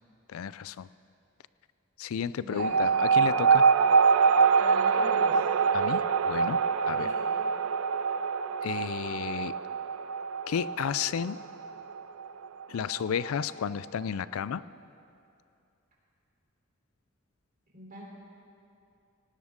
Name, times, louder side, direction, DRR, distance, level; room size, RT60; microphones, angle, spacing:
voice 1, 0.3-0.9 2.0-3.7 5.7-7.1 8.6-9.5 10.5-11.4 12.7-14.6, left 7 dB, 80° left, 17 dB, 0.4 m, -32 dB
voice 2, 2.4-2.8 4.5-5.4 7.0-7.3 17.7-18.0, right 1 dB, 40° right, -3 dB, 3.6 m, -43 dB
sound 1, 2.6-13.5, right 5 dB, 80° right, 0.4 m, -25 dB
18.5 x 17.0 x 3.7 m, 2.6 s
head